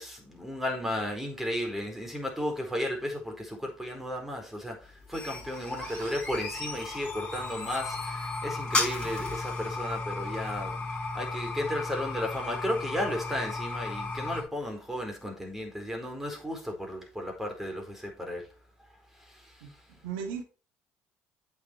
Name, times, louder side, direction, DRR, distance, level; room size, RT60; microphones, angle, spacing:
voice 1, 0.0-4.8 5.1-10.8 11.1-18.4, left 1 dB, 5° right, 4.5 m, -34 dB
sound 1, 4.8-14.4, left 3 dB, 20° left, 5.7 m, -34 dB
voice 2, 5.8-6.2 19.6-19.7 20.0-20.4, right 7 dB, 80° right, 2.2 m, -37 dB
8.4 x 6.1 x 4.6 m
hypercardioid pair, 70°, 6 cm